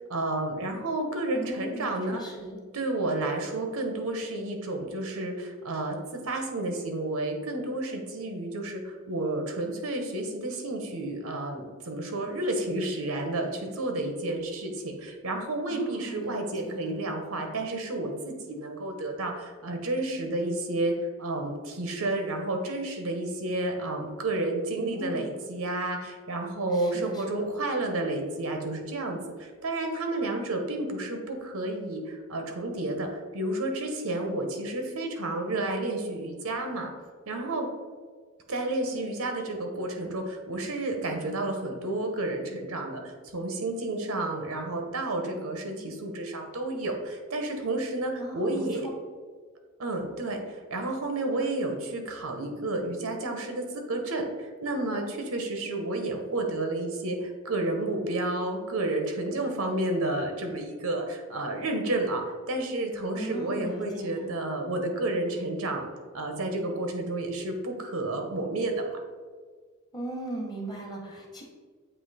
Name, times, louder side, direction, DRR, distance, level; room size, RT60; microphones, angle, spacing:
voice 1, 0.0-2.2 2.7-20.9 21.2-36.9 37.3-37.7 38.5-48.9 49.8-65.9 66.1-69.0, right 2 dB, 85° right, 4 dB, 1.0 m, -31 dB
voice 2, 1.3-2.6 15.7-17.0 24.8-25.4 26.7-27.5 48.2-48.8 63.1-64.3 69.9-71.4, right 1 dB, 20° left, 0 dB, 1.1 m, -38 dB
7.9 x 2.9 x 4.1 m, 1.5 s
head